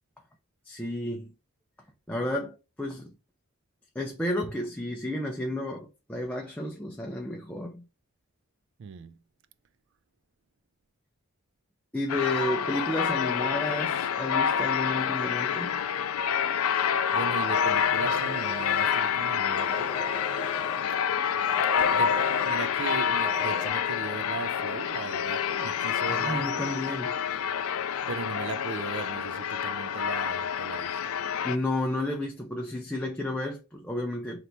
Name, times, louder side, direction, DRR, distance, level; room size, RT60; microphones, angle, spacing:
voice 1, 0.7-1.3 2.1-3.1 4.0-7.8 11.9-15.8 26.1-27.2 31.4-34.5, left 1 dB, 5° left, 0.5 m, -32 dB
voice 2, 8.8-9.2 16.7-20.0 21.8-26.8 28.1-31.1, right 6 dB, 55° right, 0.3 m, -38 dB
sound 1, 12.1-31.6, left 7 dB, 80° left, 0.4 m, -28 dB
sound 2, 17.5-19.0 19.5-20.9 21.4-22.6 23.1-23.7, equal, 25° left, 1.0 m, -40 dB
3.2 x 2.9 x 3.9 m
head